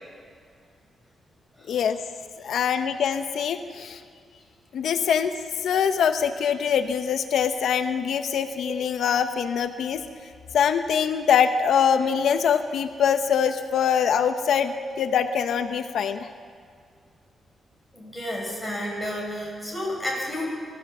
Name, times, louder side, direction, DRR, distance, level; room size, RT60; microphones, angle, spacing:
voice 1, 1.7-2.0 2.4-4.0 4.7-5.3 5.6-10.0 10.5-16.3, left 7 dB, 75° left, 8 dB, 0.9 m, -23 dB
voice 2, 17.9-20.5, left 1 dB, ahead, -3 dB, 7.1 m, -31 dB
23.5 x 15.0 x 7.4 m, 2.2 s
cardioid pair, 130°, 0 cm